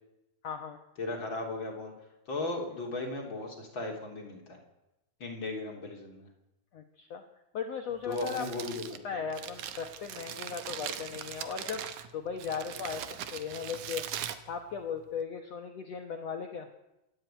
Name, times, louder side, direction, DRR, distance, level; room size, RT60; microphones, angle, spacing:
voice 1, 0.4-0.8 6.7-7.2 7.5-8.5 9.0-11.9 12.1-14.0 14.5-16.7, left 6 dB, 65° left, 5 dB, 1.7 m, -37 dB
voice 2, 1.0-1.9 2.3-4.6 5.2-6.3 8.0-8.8 9.1-9.2, left 2 dB, 35° left, 1 dB, 3.7 m, -36 dB
Crumpling crinkling, 7.9-15.2, right 10 dB, 65° right, 2.2 m, -41 dB
27.0 x 11.0 x 9.1 m, 0.95 s
omnidirectional pair, 4.3 m